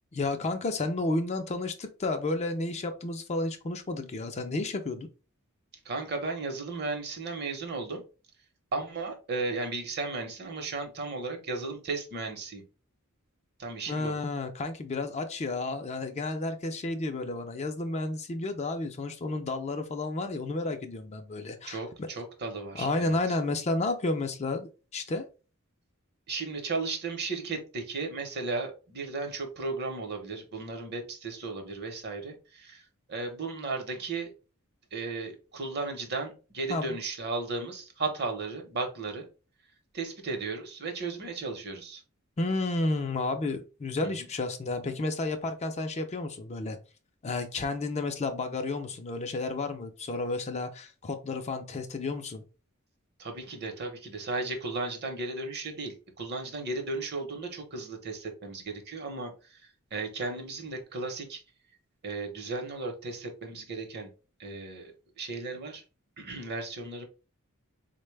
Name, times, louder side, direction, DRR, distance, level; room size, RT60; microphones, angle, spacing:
voice 1, 0.1-5.1 13.9-22.1 22.7-25.2 36.7-36.9 42.4-46.8 47.2-52.4, left 2 dB, 30° left, 0.4 m, -31 dB
voice 2, 5.8-8.0 8.7-12.6 13.6-14.2 21.7-23.2 26.3-34.3 34.9-39.3 39.9-42.0 44.0-44.3 53.2-61.4 62.0-64.1 64.4-65.8 66.2-67.1, right 3 dB, 50° right, 0.8 m, -35 dB
4.1 x 2.1 x 3.2 m
head